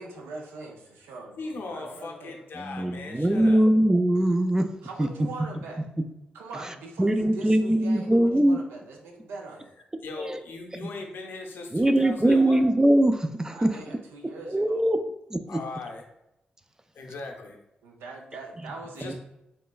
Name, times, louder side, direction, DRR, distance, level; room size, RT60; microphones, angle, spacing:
voice 1, 0.0-2.3 4.8-5.9 6.3-9.7 13.5-14.9 17.8-19.1, right 3 dB, 90° right, 1 dB, 0.5 m, -42 dB
voice 2, 1.4-3.6 10.0-12.6 15.5-16.0 16.9-17.6 18.9-19.1, left 3 dB, 70° left, 1 dB, 0.6 m, -38 dB
voice 3, 2.6-4.7 5.0-5.1 7.0-8.6 10.2-10.4 10.7-10.9 11.7-13.8 14.5-15.0 15.3-15.6 19.0-19.1, right 1 dB, 15° right, 8 dB, 0.3 m, -22 dB
3.1 x 3.0 x 2.3 m, 0.87 s
supercardioid pair, 45°, 4 cm